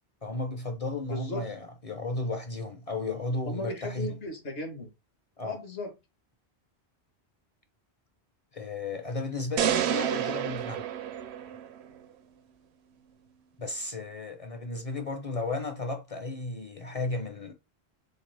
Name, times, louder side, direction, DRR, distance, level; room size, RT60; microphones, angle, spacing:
voice 1, 0.2-4.2 5.4-5.6 8.5-10.8 13.6-17.5, left 2 dB, 40° left, 0.6 m, -34 dB
voice 2, 1.1-1.4 3.4-4.9 5.4-5.9, left 2 dB, 65° left, 1.6 m, -36 dB
sound 1, 9.6-11.9, right 9 dB, 75° right, 0.8 m, -29 dB
6.4 x 2.5 x 3.3 m
omnidirectional pair, 1.1 m